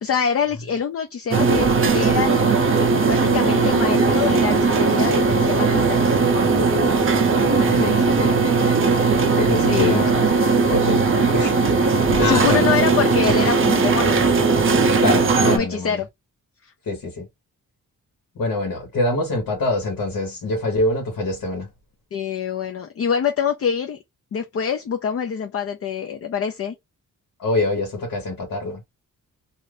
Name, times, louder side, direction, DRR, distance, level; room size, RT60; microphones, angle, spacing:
voice 1, 0.0-2.4 2.7-6.0 9.7-10.0 12.2-14.4 15.4-16.1 16.6-16.7 22.1-24.0 24.3-26.7, left 7 dB, 45° left, 0.4 m, -25 dB
sound 1, 1.3-15.6, right 4 dB, 40° right, 0.5 m, -18 dB
voice 2, 7.5-8.4 9.3-11.9 12.1-12.7 15.0-16.0 16.9-17.3 18.3-21.7 27.4-28.8, left 2 dB, 90° left, 1.2 m, -25 dB
2.5 x 2.5 x 3.2 m
wide cardioid pair, 150°, 33 cm